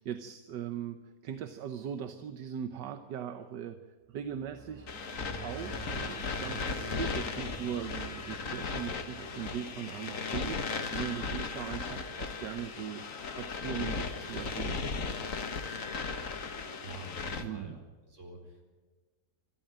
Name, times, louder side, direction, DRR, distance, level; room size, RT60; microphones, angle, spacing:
voice 1, 0.0-3.8 4.1-4.9 5.4-14.9 17.4-17.8, right 9 dB, 75° right, 9 dB, 1.5 m, -39 dB
sound 1, 4.1-10.8, right 3 dB, 10° right, 1.7 m, -48 dB
sound 2, 4.9-17.4, left 4 dB, 50° left, 1.7 m, -36 dB
voice 2, 16.8-18.6, right 2 dB, 40° right, 2 dB, 4.5 m, -47 dB
25.5 x 13.5 x 9.0 m, 1.3 s
omnidirectional pair, 1.9 m